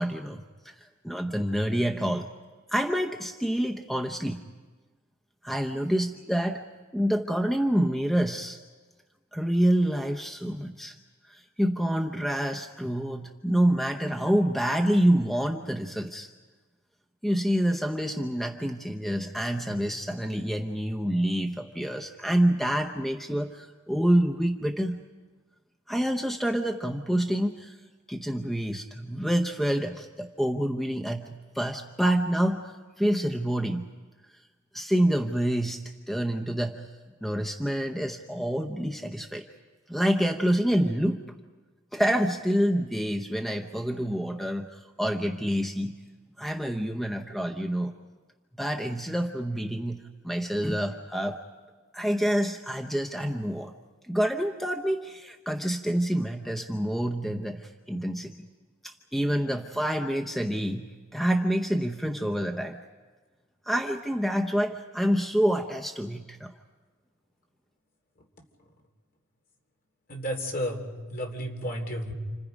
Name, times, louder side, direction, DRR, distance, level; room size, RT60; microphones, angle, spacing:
voice 1, 0.0-2.3 2.7-4.4 5.4-6.6 6.9-8.6 9.3-11.0 11.3-16.3 17.2-25.0 25.9-27.8 28.1-33.9 34.7-36.9 37.2-39.5 39.9-41.2 41.9-46.0 46.4-47.9 48.6-51.4 51.9-53.7 54.1-58.3 58.8-62.8 63.6-66.5, equal, ahead, 4 dB, 0.7 m, -27 dB
voice 2, 70.1-72.1, equal, 45° left, 2 dB, 3.2 m, -32 dB
29.5 x 26.5 x 5.2 m, 1.3 s
head